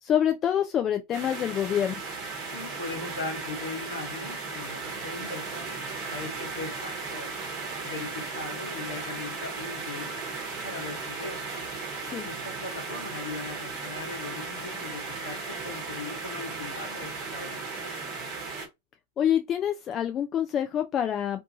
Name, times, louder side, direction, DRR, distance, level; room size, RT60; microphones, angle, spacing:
voice 1, 0.0-2.0 12.0-12.3 19.2-21.4, left 10 dB, 30° left, 0.3 m, -26 dB
sound 1, 1.1-18.7, right 4 dB, 35° right, 1.0 m, -36 dB
voice 2, 2.5-5.6 6.0-7.4 7.8-10.1 10.6-11.4 12.2-17.9, left 3 dB, 70° left, 1.1 m, -39 dB
2.6 x 2.3 x 2.6 m
figure-of-eight pair, 90°, 0 cm